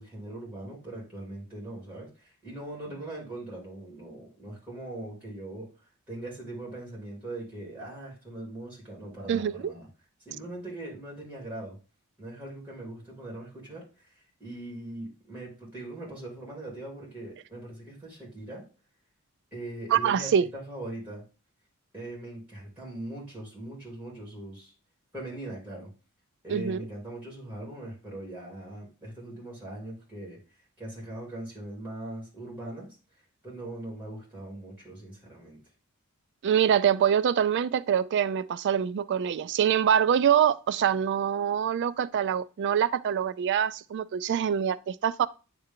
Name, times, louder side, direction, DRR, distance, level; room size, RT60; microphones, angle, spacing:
voice 1, 0.0-5.7 6.1-9.9 10.2-11.8 12.2-18.6 19.5-21.2 21.9-24.7 25.1-25.9 26.4-30.4 30.8-32.9 33.4-35.6, right 1 dB, 5° right, 3.0 m, -40 dB
voice 2, 9.3-9.7 19.9-20.5 26.5-26.8 36.4-45.3, right 8 dB, 50° right, 0.3 m, -25 dB
9.4 x 3.3 x 3.7 m
head